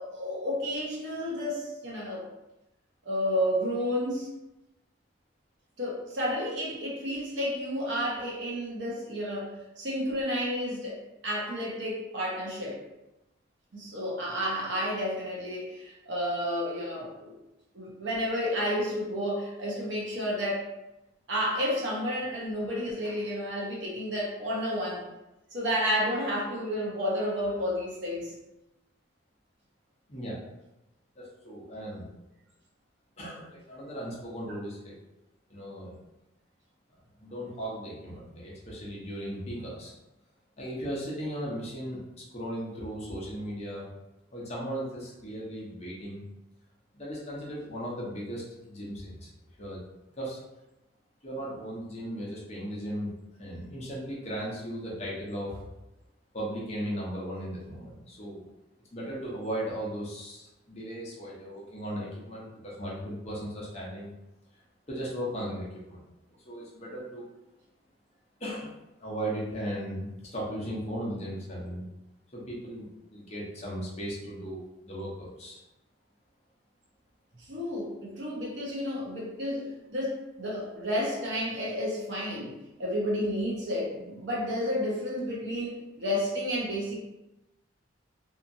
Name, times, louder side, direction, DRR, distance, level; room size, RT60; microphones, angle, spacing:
voice 1, 0.0-2.2 3.0-4.3 5.8-12.8 13.7-17.3 17.7-20.7 21.3-25.0 25.5-28.3 77.5-82.5 82.8-87.0, equal, 60° right, -4 dB, 0.8 m, -31 dB
voice 2, 30.1-30.4 31.2-32.0 33.2-34.9 35.5-36.0 37.2-39.9 40.6-42.0 42.3-43.9 44.3-46.2 46.9-49.3 49.6-49.8 50.2-50.4 51.2-53.1 53.4-55.6 56.3-58.5 58.9-64.1 64.9-66.0 66.4-67.2 68.4-71.9 72.3-75.6, equal, 30° left, -5 dB, 0.7 m, -37 dB
2.8 x 2.4 x 2.6 m, 0.96 s
head